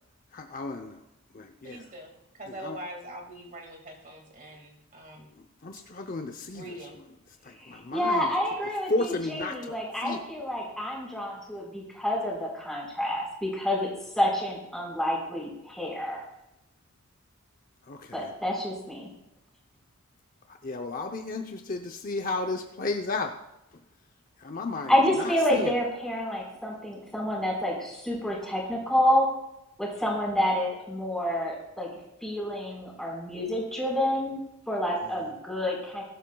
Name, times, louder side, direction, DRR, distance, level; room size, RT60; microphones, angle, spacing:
voice 1, 0.3-1.0 1.3-1.8 2.6-2.8 5.6-6.6 7.4-8.3 8.9-9.8 10.0-10.2 17.9-18.3 20.6-23.3 24.4-24.9 25.2-25.7 35.2-35.3, left 3 dB, 40° left, 4 dB, 0.7 m, -33 dB
voice 2, 1.6-5.3 5.7-5.8 6.5-7.0, right 1 dB, 35° right, 1 dB, 2.1 m, -43 dB
voice 3, 7.5-13.9 14.1-16.2 18.1-19.1 24.7-29.3 29.8-31.9 32.2-34.4 34.7-36.0, left 1 dB, ahead, -3 dB, 4.5 m, -28 dB
21.5 x 12.5 x 2.3 m, 0.91 s
head